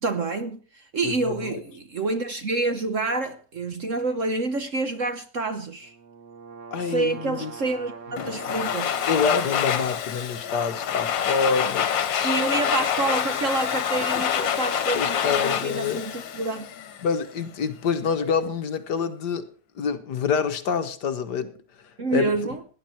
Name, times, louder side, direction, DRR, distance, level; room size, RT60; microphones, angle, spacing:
voice 1, 0.0-5.9 6.8-9.0 12.2-16.7 22.0-22.6, right 3 dB, 50° right, 1.2 m, -28 dB
voice 2, 1.0-1.6 6.7-7.5 8.5-8.6 9.1-12.5 14.1-14.2 14.9-16.0 17.0-19.5 19.7-21.5 22.1-22.3, left 5 dB, 65° left, 1.7 m, -27 dB
sound 1, 5.8-9.7, right 5 dB, 70° right, 2.2 m, -42 dB
Domestic sounds home sounds, 8.2-17.1, left 9 dB, 80° left, 1.8 m, -26 dB
18.0 x 10.0 x 4.4 m
omnidirectional pair, 2.0 m